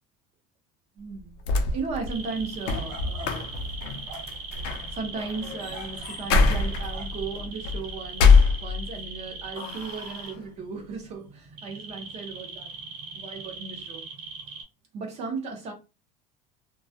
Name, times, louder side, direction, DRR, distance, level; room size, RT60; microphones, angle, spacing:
voice 1, 1.0-1.4 1.7-3.5 4.9-12.7 13.1-14.0 14.9-15.7, right 4 dB, 35° right, 0.7 m, -36 dB
sound 1, 1.2-9.1 9.5-10.3, left 4 dB, 65° left, 0.4 m, -24 dB
sound 2, 2.1-14.6, right 4 dB, 85° right, 1.1 m, -40 dB
2.2 x 2.0 x 2.7 m
cardioid pair, 180°, 19 cm